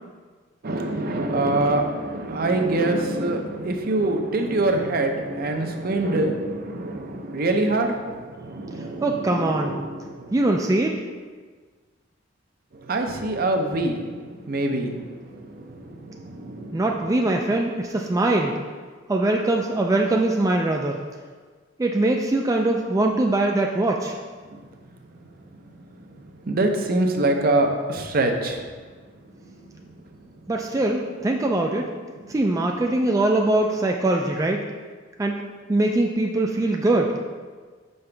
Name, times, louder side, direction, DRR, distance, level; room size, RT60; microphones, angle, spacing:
voice 1, 0.6-8.0 8.4-10.2 12.9-14.0 14.5-15.0 15.3-15.7 16.1-16.8 26.5-28.6, right 2 dB, 50° right, 4 dB, 0.6 m, -24 dB
voice 2, 8.8-9.8 10.3-11.0 16.7-18.6 19.1-21.0 21.8-24.2 30.5-31.9 32.3-34.6 35.2-35.4 35.7-37.1, right 2 dB, 15° right, 2 dB, 0.3 m, -22 dB
5.9 x 5.4 x 3.3 m, 1.5 s
head